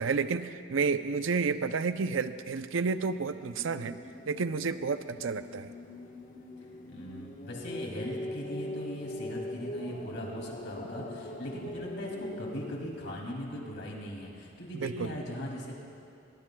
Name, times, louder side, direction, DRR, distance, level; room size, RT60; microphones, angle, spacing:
voice 1, 0.0-4.0 4.3-5.7 14.7-15.1, right 5 dB, 70° right, 11 dB, 0.5 m, -30 dB
sound 1, 2.9-13.3, left 1 dB, 40° left, 1.2 m, -42 dB
voice 2, 6.9-15.7, equal, 60° left, -1 dB, 2.7 m, -39 dB
21.0 x 20.0 x 2.3 m, 2.9 s
head